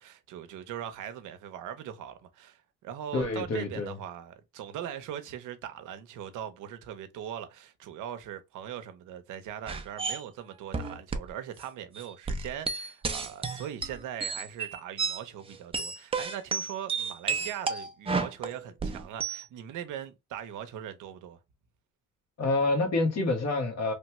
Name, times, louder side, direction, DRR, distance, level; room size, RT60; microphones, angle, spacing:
voice 1, 0.0-21.4, right 10 dB, 85° right, 0.7 m, -40 dB
voice 2, 3.1-4.0 22.4-23.9, left 2 dB, 60° left, 1.3 m, -27 dB
sound 1, 9.7-10.2 10.7-11.3 11.6-11.7 12.0-15.2 15.5-19.4, right 4 dB, 20° right, 0.5 m, -32 dB
3.2 x 2.2 x 2.9 m
cardioid pair, 90°, 30 cm